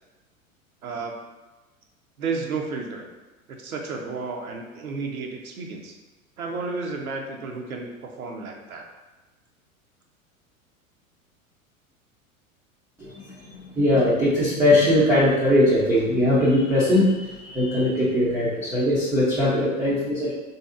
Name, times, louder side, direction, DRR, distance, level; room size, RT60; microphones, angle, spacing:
voice 1, 0.8-1.1 2.2-3.0 3.5-5.9 6.4-8.9, right 4 dB, 80° right, 1 dB, 0.6 m, -32 dB
voice 2, 13.0-20.3, left 1 dB, 5° right, -11 dB, 0.3 m, -20 dB
3.3 x 2.7 x 2.4 m, 1.2 s
figure-of-eight pair, 90°, 42 cm